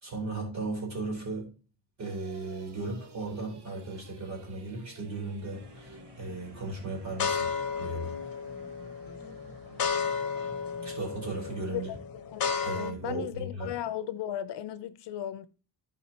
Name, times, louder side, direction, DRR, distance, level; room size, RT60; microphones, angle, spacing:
voice 1, 0.0-1.5 2.0-7.5 7.8-8.2 10.8-11.9 12.6-13.7, right 3 dB, 40° right, 4.2 m, -36 dB
sound 1, 2.0-11.8, right 4 dB, 65° right, 1.3 m, -53 dB
sound 2, 5.6-6.0 6.6-12.9, left 6 dB, 55° left, 1.0 m, -33 dB
voice 2, 12.3-15.5, left 11 dB, 75° left, 0.7 m, -36 dB
14.5 x 5.1 x 2.9 m
wide cardioid pair, 170°, 42 cm